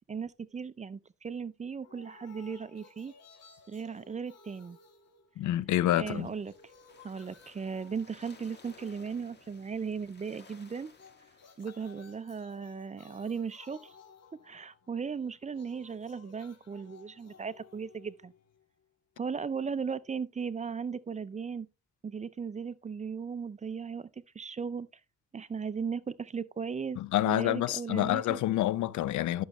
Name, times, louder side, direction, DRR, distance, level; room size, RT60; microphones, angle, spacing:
voice 1, 0.1-3.1 3.7-4.8 6.0-6.5 7.0-10.9 11.6-14.0 14.4-18.3 19.2-21.7 22.0-24.1 24.3-24.9 25.3-27.0 27.2-28.4, right 6 dB, 25° right, 0.5 m, -37 dB
sound 1, 1.8-5.8 6.1-9.9 10.8-18.8, left 5 dB, 55° left, 2.6 m, -58 dB
voice 2, 5.4-6.3 27.0-29.4, left 13 dB, 75° left, 0.6 m, -28 dB
sound 2, 6.1-12.2, left 4 dB, 35° left, 1.8 m, -58 dB
11.0 x 6.4 x 3.0 m
cardioid pair, 90°, 30 cm